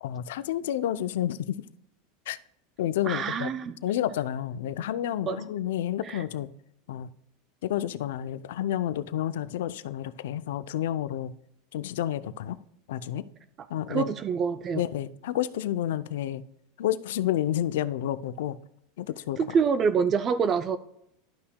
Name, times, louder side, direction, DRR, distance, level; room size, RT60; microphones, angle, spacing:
voice 1, 0.0-1.7 2.3-2.4 2.8-3.5 3.8-6.5 6.9-7.1 7.6-11.3 11.7-12.6 12.9-13.2 13.7-14.1 14.7-16.4 16.8-18.6 19.0-19.6, left 11 dB, 80° left, 0.4 m, -30 dB
voice 2, 3.1-3.8 5.3-5.4 6.1-6.2 13.9-14.8 19.4-20.8, right 6 dB, 30° right, 0.4 m, -26 dB
11.5 x 5.7 x 2.2 m
supercardioid pair, 150°, 0 cm